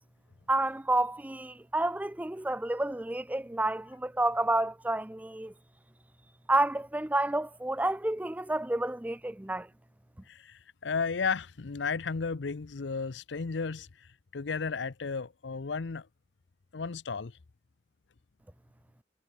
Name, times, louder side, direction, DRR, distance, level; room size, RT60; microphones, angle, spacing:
voice 1, 0.5-5.5 6.5-9.7, right 2 dB, 10° right, 0.4 m, -30 dB
voice 2, 10.3-16.1 16.7-17.4, left 5 dB, 80° left, 0.7 m, -34 dB
head